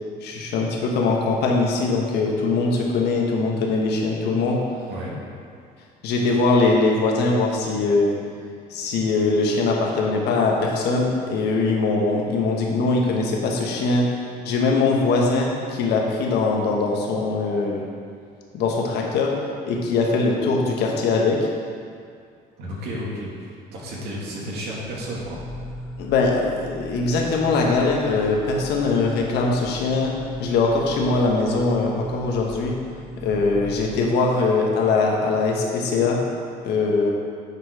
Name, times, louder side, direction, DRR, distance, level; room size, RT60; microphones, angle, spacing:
voice 1, 0.2-4.6 6.0-8.1 8.7-14.1 14.4-17.9 18.5-19.3 19.7-21.4 26.0-30.1 30.4-32.8 33.2-36.2 36.6-37.1, left 3 dB, 80° left, -1 dB, 1.3 m, -21 dB
voice 2, 4.9-5.2 22.6-25.4, equal, 75° right, -4 dB, 2.1 m, -32 dB
sound 1, 24.8-34.1, left 1 dB, 5° left, 1.3 m, -38 dB
9.6 x 4.5 x 4.8 m, 2.2 s
cardioid pair, 110°, 17 cm